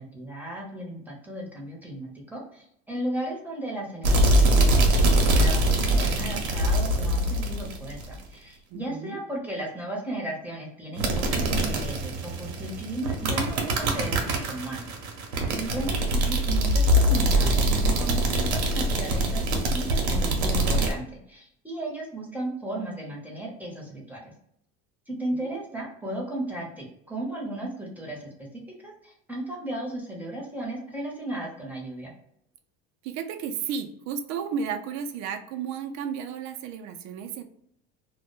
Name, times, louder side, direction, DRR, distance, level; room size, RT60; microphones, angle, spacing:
voice 1, 0.0-4.6 4.9-14.9 15.6-19.4 19.7-24.3 25.1-32.1, right 1 dB, 5° right, -2 dB, 0.8 m, -35 dB
sound 1, 4.0-8.2 11.0-20.9, right 1 dB, 90° right, 0.7 m, -23 dB
voice 2, 8.7-9.2 15.8-16.2 25.5-25.6 33.0-37.4, right 7 dB, 60° right, 7 dB, 0.5 m, -33 dB
2.1 x 2.1 x 3.0 m, 0.71 s
supercardioid pair, 105°, 32 cm